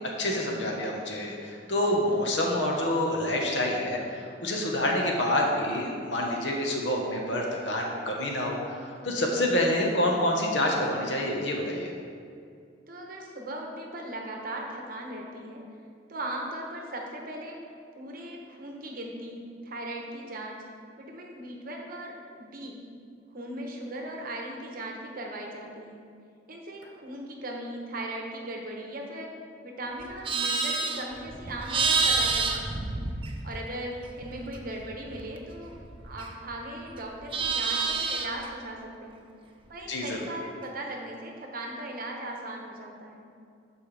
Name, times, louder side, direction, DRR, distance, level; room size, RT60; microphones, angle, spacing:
voice 1, 0.2-11.9 39.9-40.3, left 1 dB, 70° left, -1 dB, 1.3 m, -27 dB
voice 2, 12.9-15.6 16.1-17.6 17.9-20.6 21.0-22.8 23.3-26.0 26.5-29.3 29.6-33.0 33.4-35.7 36.0-39.3 39.7-43.3, right 1 dB, 50° right, 0 dB, 1.0 m, -38 dB
Livestock farm animals working animals, 30.0-33.7 34.0-36.6 36.9-38.5, right 4 dB, 30° right, 0.6 m, -29 dB
13.0 x 4.6 x 3.4 m, 2.3 s
head